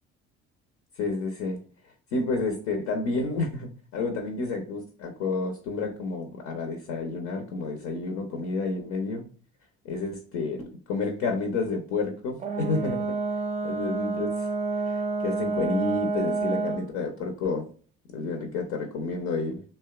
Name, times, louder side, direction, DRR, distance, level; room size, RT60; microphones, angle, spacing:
voice 1, 1.0-1.6 2.1-9.3 9.8-13.2 13.6-14.5 14.9-17.7 18.1-19.6, left 3 dB, 65° left, 4 dB, 0.6 m, -30 dB
Brass instrument, 12.4-16.9, right 3 dB, 25° right, 0.4 m, -29 dB
2.7 x 2.2 x 2.2 m, 0.41 s
hypercardioid pair, 65°, 30 cm